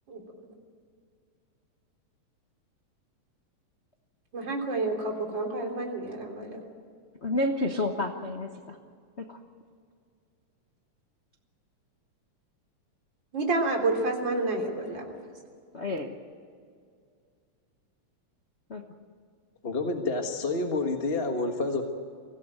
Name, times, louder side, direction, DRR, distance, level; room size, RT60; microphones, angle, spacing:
voice 1, 4.3-6.6 13.3-15.1, right 2 dB, 40° right, 2 dB, 3.9 m, -29 dB
voice 2, 7.2-8.8 9.2-9.4 15.7-16.1 18.7-18.8, left 2 dB, 90° left, 4 dB, 0.5 m, -30 dB
voice 3, 19.6-21.8, left 3 dB, 30° left, 4 dB, 1.1 m, -28 dB
23.5 x 16.5 x 9.0 m, 2.2 s
omnidirectional pair, 3.3 m